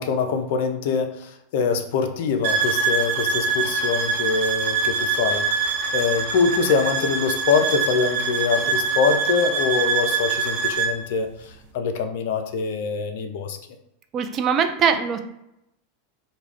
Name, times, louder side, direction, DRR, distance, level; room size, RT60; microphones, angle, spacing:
voice 1, 0.0-13.6, left 5 dB, 60° left, 6 dB, 0.4 m, -24 dB
sound 1, 2.4-11.0, right 4 dB, 65° right, 0.8 m, -24 dB
voice 2, 14.1-15.2, right 6 dB, 35° right, 7 dB, 0.3 m, -21 dB
2.3 x 2.2 x 3.3 m, 0.83 s
figure-of-eight pair, 90°, 0 cm